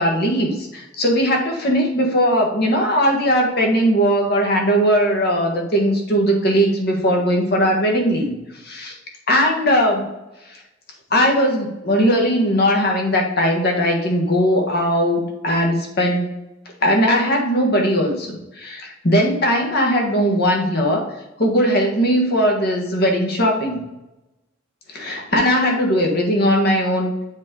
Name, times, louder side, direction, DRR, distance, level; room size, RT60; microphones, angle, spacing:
voice 1, 0.0-8.4 8.6-9.0 9.3-10.0 10.5-10.6 11.1-16.3 16.8-21.1 21.4-23.8 24.9-27.1, equal, 55° left, 1 dB, 1.5 m, -19 dB
7.3 x 3.8 x 5.2 m, 0.97 s
head